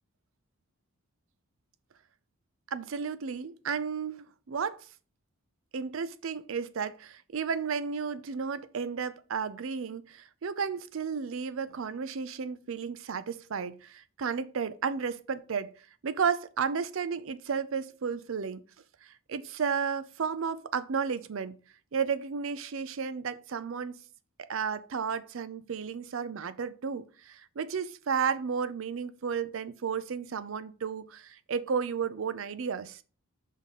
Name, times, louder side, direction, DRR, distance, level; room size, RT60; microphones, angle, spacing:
voice 1, 2.7-4.9 5.7-15.7 16.0-18.6 19.0-21.6 21.9-24.0 24.5-33.0, right 6 dB, 65° right, 0.5 m, -33 dB
5.3 x 3.8 x 5.6 m
head